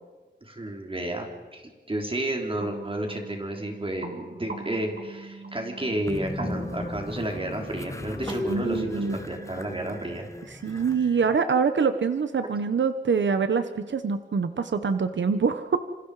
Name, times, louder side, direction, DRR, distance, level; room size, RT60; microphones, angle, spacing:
voice 1, 0.4-1.3 1.5-10.3, right 1 dB, 30° right, 2 dB, 3.6 m, -32 dB
sound 1, 2.6-10.2, right 3 dB, 45° right, 2.4 m, -42 dB
Train, 6.1-11.4, left 1 dB, 15° left, 1.4 m, -35 dB
voice 2, 8.5-9.2 10.6-15.9, right 5 dB, 80° right, 10 dB, 1.1 m, -25 dB
28.5 x 26.5 x 5.0 m, 1.3 s
wide cardioid pair, 110°, 19 cm